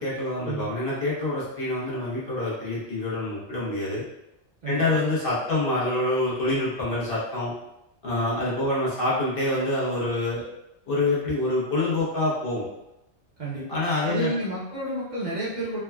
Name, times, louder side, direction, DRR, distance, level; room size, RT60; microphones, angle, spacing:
voice 1, 0.0-4.0 4.6-7.5 8.0-10.4 10.9-12.6 13.7-14.3, left 2 dB, 55° left, -7 dB, 1.0 m, -26 dB
voice 2, 4.6-5.0 13.4-13.8 14.0-15.8, right 1 dB, 50° right, -8 dB, 0.6 m, -30 dB
3.4 x 2.2 x 2.2 m, 0.89 s
omnidirectional pair, 1.2 m